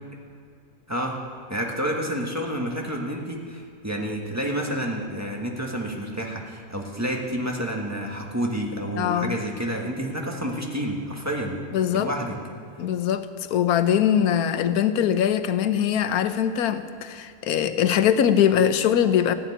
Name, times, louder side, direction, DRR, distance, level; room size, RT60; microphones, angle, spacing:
voice 1, 0.9-1.2 1.5-11.6 11.9-12.3, equal, 10° right, 1.4 m, -29 dB
voice 2, 9.0-9.4 11.7-12.1 12.8-13.3 13.5-19.3, left 9 dB, 85° left, 1.2 m, -22 dB
15.0 x 7.2 x 9.9 m
omnidirectional pair, 1.5 m